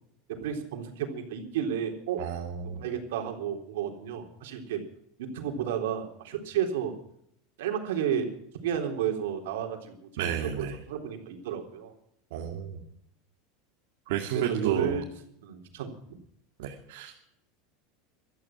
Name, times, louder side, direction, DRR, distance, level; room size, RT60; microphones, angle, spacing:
voice 1, 0.3-2.2 2.8-4.8 5.2-6.9 7.6-8.3 8.6-10.1 10.4-11.9 12.4-12.5 14.3-15.0 15.4-16.2, right 8 dB, 90° right, 3 dB, 3.7 m, -32 dB
voice 2, 2.2-2.8 10.2-10.8 12.3-12.8 14.1-15.0 16.6-17.3, right 9 dB, 70° right, 1 dB, 2.4 m, -32 dB
17.0 x 13.0 x 6.0 m, 0.71 s
supercardioid pair, 160°, 0 cm